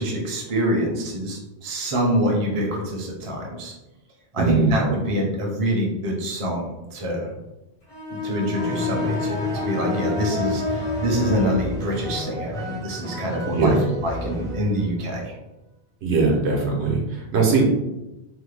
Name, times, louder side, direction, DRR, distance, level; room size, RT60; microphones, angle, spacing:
voice 1, 0.0-3.7 4.3-7.3 8.1-13.7 14.0-15.3, equal, 35° right, -1 dB, 0.6 m, -25 dB
voice 2, 4.4-4.8 13.5-13.8 16.0-17.7, right 4 dB, 80° right, 0 dB, 1.0 m, -20 dB
Bowed string instrument, 7.9-11.7, left 4 dB, 75° left, 1.5 m, -29 dB
sound 1, 8.5-15.0, left 1 dB, 5° left, 0.6 m, -32 dB
3.2 x 2.2 x 3.2 m, 0.96 s
omnidirectional pair, 1.1 m